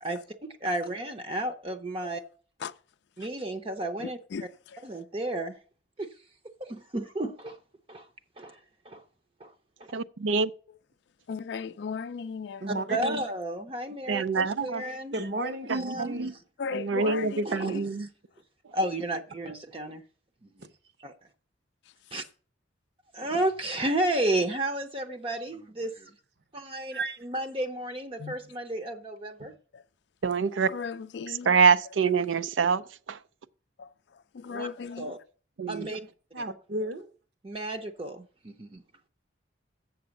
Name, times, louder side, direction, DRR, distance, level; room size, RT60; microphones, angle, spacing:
voice 1, 0.0-2.2 3.2-4.2 4.8-5.6 6.0-6.1 6.6-7.6 7.9-8.1 8.4-8.6 8.8-9.0 9.4-9.5 12.7-16.2 17.5-17.8 18.7-20.0 20.4-20.5 21.0-21.1 22.1-22.2 23.1-26.1 26.5-29.5 34.5-34.7 35.0-35.2 35.7-36.0 37.4-38.8, right 1 dB, 30° right, 0.6 m, -32 dB
voice 2, 4.0-4.8 11.3-12.9 16.6-17.9 28.2-28.4 29.7-29.8 30.6-31.5 33.8-35.1, left 5 dB, 65° left, 0.3 m, -37 dB
voice 3, 9.9-10.5 14.1-14.8 15.7-16.3 16.7-18.1 30.2-30.7 31.4-33.2 35.6-35.9, right 5 dB, 90° right, 0.5 m, -25 dB
voice 4, 12.6-13.2 15.1-16.4 20.6-20.7 26.9-27.2 29.4-29.5 35.7-36.1 36.3-37.1, right 1 dB, 60° right, 0.9 m, -34 dB
7.7 x 7.0 x 6.4 m
head